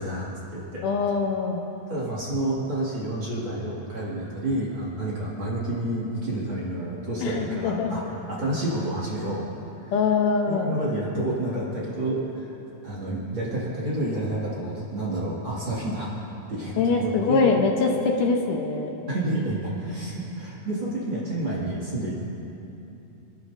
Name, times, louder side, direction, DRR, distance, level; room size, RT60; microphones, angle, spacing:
voice 1, 0.0-0.8 1.9-9.5 9.8-9.9 10.5-12.5 12.8-16.1 16.5-17.5 19.1-22.1, right 1 dB, 40° right, -7 dB, 2.8 m, -29 dB
voice 2, 0.8-1.6 7.2-8.0 9.9-10.7 16.8-17.9 18.2-18.9, left 4 dB, 75° left, 2 dB, 2.4 m, -23 dB
26.5 x 11.5 x 2.7 m, 3.0 s
omnidirectional pair, 3.9 m